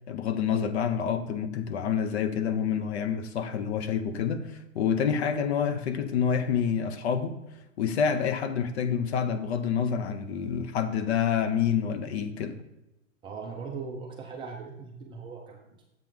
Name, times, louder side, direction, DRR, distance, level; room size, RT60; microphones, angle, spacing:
voice 1, 0.1-7.4 7.8-12.6, left 7 dB, 55° left, 0.8 m, -28 dB
voice 2, 13.2-15.8, right 5 dB, 15° right, 0.4 m, -39 dB
7.5 x 5.8 x 3.6 m
hypercardioid pair, 120°, 40 cm